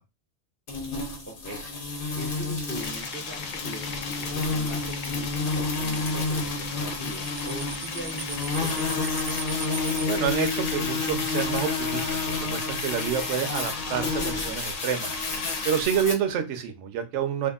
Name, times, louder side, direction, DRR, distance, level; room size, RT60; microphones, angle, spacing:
sound 1, 0.7-16.1, left 3 dB, 50° left, 0.8 m, -30 dB
voice 1, 1.3-1.6 2.2-9.4, equal, 20° left, 0 dB, 0.3 m, -41 dB
sound 2, 2.7-15.8, left 5 dB, 90° left, 0.9 m, -37 dB
sound 3, 6.8-10.0 12.2-16.0, right 6 dB, 40° right, 0.5 m, -41 dB
voice 2, 10.1-12.0 12.4-15.2 15.6-17.5, right 8 dB, 75° right, 6 dB, 0.9 m, -28 dB
2.7 x 2.4 x 2.3 m, 0.25 s
omnidirectional pair, 1.3 m